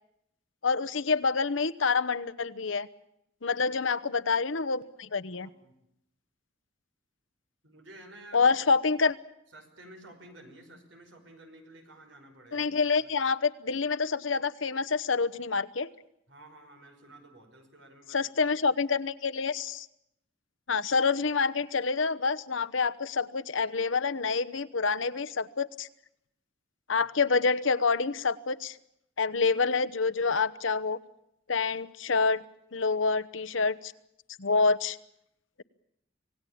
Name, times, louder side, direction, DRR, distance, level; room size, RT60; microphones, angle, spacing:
voice 1, 0.6-2.9 3.4-5.5 8.3-9.2 12.5-15.9 18.1-19.9 20.7-25.9 26.9-28.8 29.2-31.0 31.5-32.4 32.7-33.9 34.4-35.0, left 4 dB, 75° left, 12 dB, 1.0 m, -27 dB
voice 2, 7.6-8.4 9.5-12.6 16.3-18.2, right 1 dB, 65° right, 5 dB, 5.5 m, -51 dB
26.5 x 18.5 x 8.7 m, 0.79 s
head